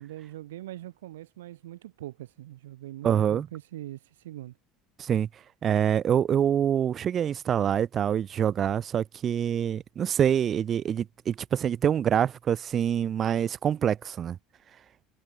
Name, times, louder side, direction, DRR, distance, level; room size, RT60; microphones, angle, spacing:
voice 1, 0.0-4.6, right 14 dB, 85° right, 0.9 m, -42 dB
voice 2, 3.0-3.5 5.0-5.3 5.6-14.4, right 9 dB, 40° right, 0.3 m, -25 dB
hypercardioid pair, 90°, 0 cm